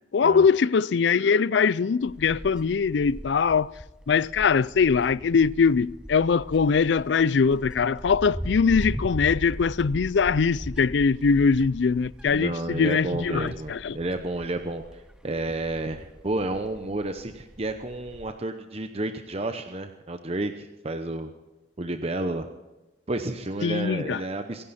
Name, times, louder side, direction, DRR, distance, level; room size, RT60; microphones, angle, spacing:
voice 1, 0.1-3.7 4.1-14.0 23.6-24.2, left 5 dB, 80° left, 0.4 m, -22 dB
Wind, 2.0-18.3, equal, 5° right, 0.5 m, -40 dB
voice 2, 12.3-21.3 21.8-22.5 23.1-24.6, right 2 dB, 35° right, 0.9 m, -31 dB
25.5 x 11.0 x 4.3 m
head